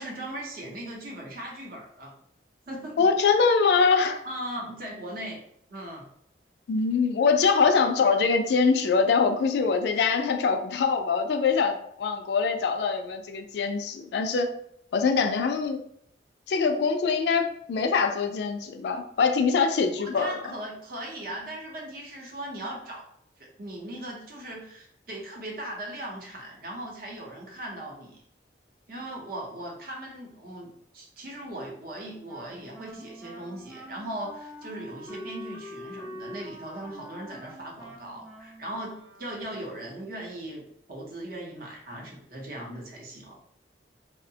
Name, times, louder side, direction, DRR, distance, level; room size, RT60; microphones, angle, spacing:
voice 1, 0.0-2.1 2.7-3.1 4.2-5.4 5.7-6.0 20.0-23.0 23.4-28.2 28.9-40.6 40.9-43.4, right 1 dB, 55° right, -1 dB, 0.7 m, -38 dB
voice 2, 3.0-4.2 6.7-14.5 14.9-15.8 16.5-20.3, left 5 dB, 65° left, 6 dB, 0.3 m, -23 dB
Wind instrument woodwind instrument, 32.2-39.6, equal, 5° right, 0.4 m, -45 dB
2.7 x 2.0 x 2.7 m, 0.70 s
head